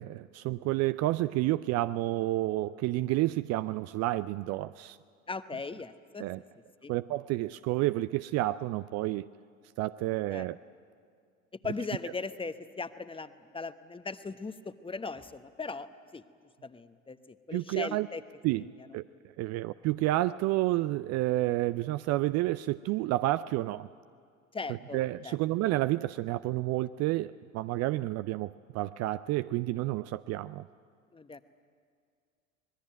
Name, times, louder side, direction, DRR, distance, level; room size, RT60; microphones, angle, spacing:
voice 1, 0.0-5.0 6.2-6.4 6.9-9.3 9.8-10.6 17.5-18.1 18.4-18.7 18.9-19.0 19.4-23.9 24.9-30.7, right 17 dB, 40° right, 14 dB, 0.5 m, -30 dB
voice 2, 5.3-6.3 6.8-6.9 10.3-10.5 11.6-15.9 16.1-16.2 16.6-18.2 18.8-18.9 24.5-25.0 25.2-25.4 31.1-31.4, left 4 dB, 15° left, 12 dB, 1.0 m, -38 dB
25.0 x 20.5 x 9.2 m, 2.2 s
figure-of-eight pair, 70°, 41 cm